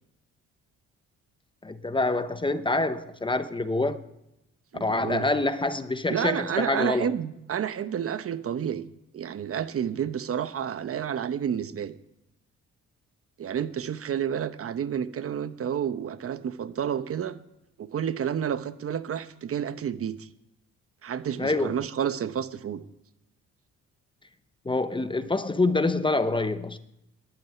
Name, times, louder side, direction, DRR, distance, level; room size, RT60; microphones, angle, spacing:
voice 1, 1.6-4.0 4.8-7.1 21.4-21.8 24.6-26.8, left 2 dB, 15° left, 0.9 m, -26 dB
voice 2, 4.7-5.3 6.1-8.9 9.1-12.0 13.4-17.4 17.8-20.3 21.0-22.8, right 8 dB, 50° right, 1.0 m, -30 dB
11.5 x 9.1 x 9.2 m
cardioid pair, 85°, 30 cm